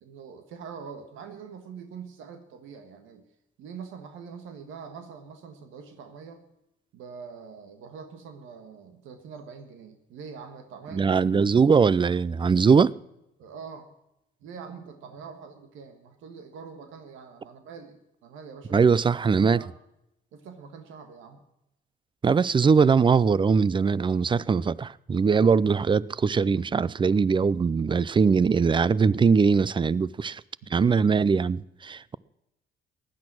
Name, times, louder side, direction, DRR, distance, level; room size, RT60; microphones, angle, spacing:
voice 1, 0.0-3.2 3.6-6.4 6.9-11.2 13.4-13.9 14.4-18.8 19.3-19.7 20.3-21.4, right 6 dB, 85° right, 1.6 m, -44 dB
voice 2, 10.9-12.9 18.7-19.6 22.2-30.4 30.7-32.2, right 5 dB, 25° right, 0.4 m, -21 dB
15.5 x 11.0 x 6.1 m
cardioid pair, 90°, 20 cm